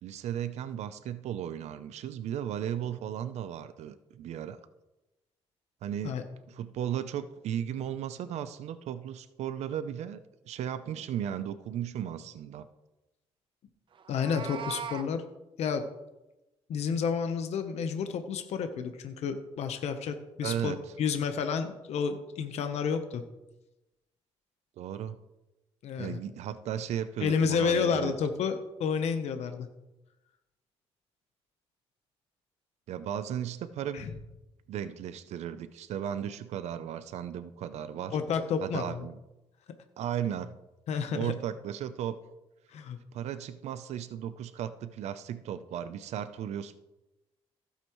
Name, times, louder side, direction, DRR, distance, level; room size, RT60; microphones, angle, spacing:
voice 1, 0.0-4.6 5.8-6.2 6.5-10.2 10.5-12.7 20.4-20.8 24.8-25.2 26.0-28.1 32.9-34.1 34.7-38.2 38.6-39.2 40.0-40.6 41.1-42.2 43.1-46.7, right 10 dB, 80° right, 12 dB, 0.6 m, -35 dB
Meow, 14.0-15.1, right 7 dB, 50° right, 0.7 m, -39 dB
voice 2, 14.1-15.2 15.6-15.8 16.7-20.7 21.0-23.2 25.8-26.2 27.2-29.7 33.9-34.1 38.1-39.0 40.9-41.3 42.7-43.0, left 6 dB, 75° left, 8 dB, 0.9 m, -30 dB
15.5 x 8.2 x 3.1 m, 0.98 s
cardioid pair, 110°, 11 cm